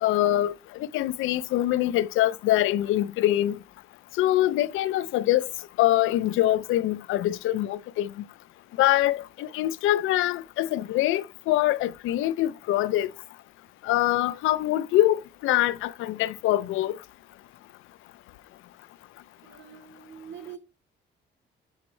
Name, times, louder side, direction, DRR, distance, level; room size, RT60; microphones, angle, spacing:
voice 1, 0.0-3.6 4.2-5.5 5.8-8.1 8.8-13.1 13.8-15.2 15.4-17.0, left 14 dB, 90° left, 0.5 m, -24 dB
voice 2, 19.4-20.6, right 8 dB, 70° right, 4.4 m, -44 dB
10.5 x 4.2 x 3.2 m
cardioid pair, 90°, 20 cm